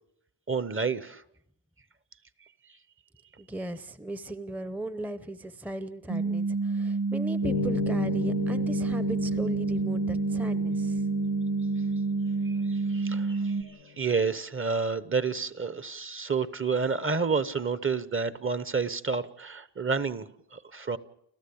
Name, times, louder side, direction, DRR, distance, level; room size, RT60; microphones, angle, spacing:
voice 1, 0.5-1.2 12.4-20.2 20.5-21.0, right 5 dB, 30° right, 1.0 m, -30 dB
voice 2, 3.4-11.0, right 1 dB, 5° right, 0.8 m, -37 dB
sound 1, 6.1-13.6, right 3 dB, 55° right, 2.2 m, -28 dB
sound 2, 7.4-14.0, left 9 dB, 70° left, 0.9 m, -36 dB
30.0 x 14.0 x 8.6 m
wide cardioid pair, 125°, 44 cm